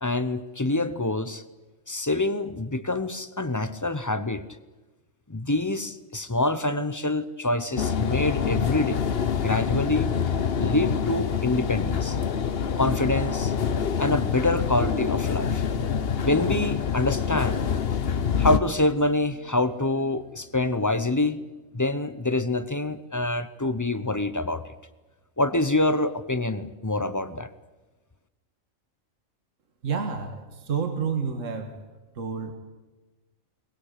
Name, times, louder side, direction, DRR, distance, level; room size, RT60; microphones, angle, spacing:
voice 1, 0.0-1.4 1.9-4.4 5.3-9.0 9.4-10.1 10.6-12.2 12.8-13.5 14.0-15.6 16.2-17.7 18.4-21.4 21.7-24.7 25.4-27.5, left 2 dB, 15° left, 13 dB, 0.7 m, -26 dB
sound 1, 7.8-18.6, left 7 dB, 50° left, 1.1 m, -26 dB
voice 2, 29.8-31.7 32.2-32.5, right 6 dB, 70° right, 6 dB, 2.0 m, -29 dB
23.0 x 20.0 x 8.4 m, 1.2 s
omnidirectional pair, 1.4 m